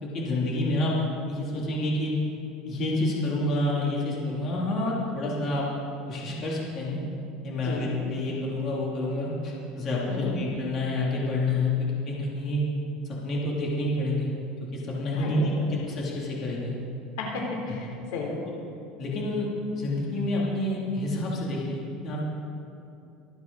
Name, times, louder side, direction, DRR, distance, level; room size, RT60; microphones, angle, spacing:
voice 1, 0.0-0.9 1.3-2.1 2.6-5.7 6.1-7.0 7.4-12.6 13.2-14.3 14.7-16.8 19.0-19.5 19.8-22.2, left 2 dB, 35° left, -4 dB, 3.1 m, -28 dB
voice 2, 10.1-10.4 15.2-15.6 17.2-18.4, left 3 dB, 85° left, -1 dB, 3.5 m, -33 dB
25.5 x 9.3 x 4.1 m, 2.7 s
supercardioid pair, 145°, 0 cm